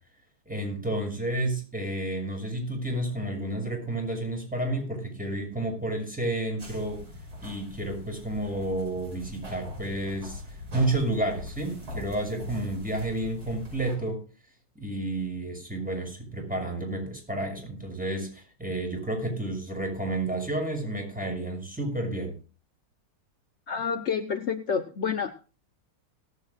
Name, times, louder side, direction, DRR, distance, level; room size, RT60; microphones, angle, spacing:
voice 1, 0.5-7.1 7.4-10.4 10.7-14.2 14.7-22.4, right 1 dB, 5° right, 1 dB, 6.5 m, -31 dB
sound 1, 6.6-14.0, left 2 dB, 75° right, 7.3 m, -42 dB
voice 2, 23.7-25.3, left 6 dB, 55° left, 7 dB, 0.7 m, -29 dB
18.0 x 15.0 x 2.5 m, 0.36 s
omnidirectional pair, 2.2 m